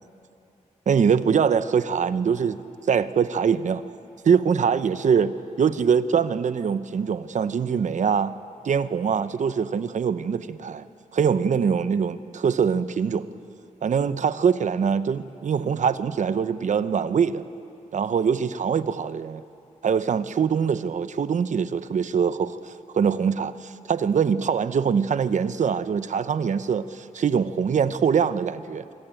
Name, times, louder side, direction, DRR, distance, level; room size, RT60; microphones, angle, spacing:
voice 1, 0.9-2.6 2.9-3.8 4.2-5.3 5.6-8.3 8.6-10.9 11.1-13.3 13.8-17.4 17.9-19.4 19.8-28.8, right 6 dB, 65° right, 13 dB, 0.8 m, -23 dB
27.0 x 24.0 x 9.0 m, 2.7 s
wide cardioid pair, 160°, 13 cm